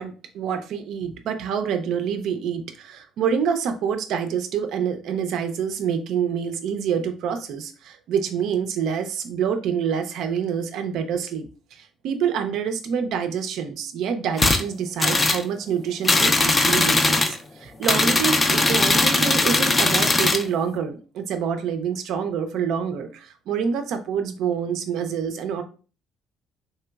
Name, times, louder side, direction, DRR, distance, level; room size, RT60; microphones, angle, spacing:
voice 1, 0.0-25.6, right 7 dB, 70° right, 7 dB, 0.4 m, -27 dB
sound 1, 14.4-14.6 15.0-15.4 16.0-17.4 17.8-20.4, left 2 dB, 25° left, 0.4 m, -19 dB
3.1 x 2.8 x 2.3 m, 0.37 s
supercardioid pair, 70°, 0 cm